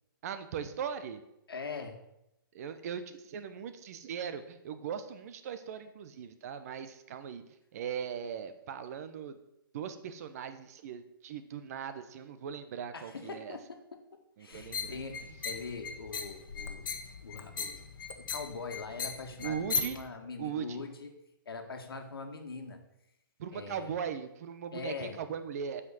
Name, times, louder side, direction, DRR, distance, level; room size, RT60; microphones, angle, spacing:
voice 1, 0.2-1.2 2.5-7.4 7.7-9.4 9.7-13.6 14.4-15.0 19.4-20.0 20.4-20.8 23.4-25.8, right 7 dB, 45° right, 11 dB, 1.0 m, -39 dB
voice 2, 1.5-2.0 12.9-14.0 14.4-17.8 18.2-21.1 21.5-22.8 23.5-23.9 24.7-25.2, left 4 dB, 90° left, 4 dB, 2.0 m, -42 dB
sound 1, 14.5-20.0, left 5 dB, 65° left, 1.4 m, -38 dB
8.0 x 6.1 x 7.7 m, 0.85 s
hypercardioid pair, 155°, 12 cm